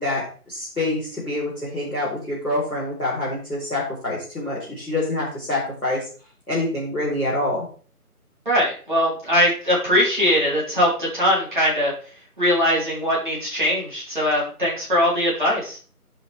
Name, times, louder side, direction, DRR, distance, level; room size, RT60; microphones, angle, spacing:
voice 1, 0.0-6.1 6.5-7.6, left 2 dB, ahead, -38 dB, 2.0 m, -26 dB
voice 2, 8.5-11.9 12.4-15.8, equal, 30° right, -6 dB, 3.4 m, -21 dB
14.0 x 5.1 x 3.4 m, 0.41 s
figure-of-eight pair, 165°, 45 cm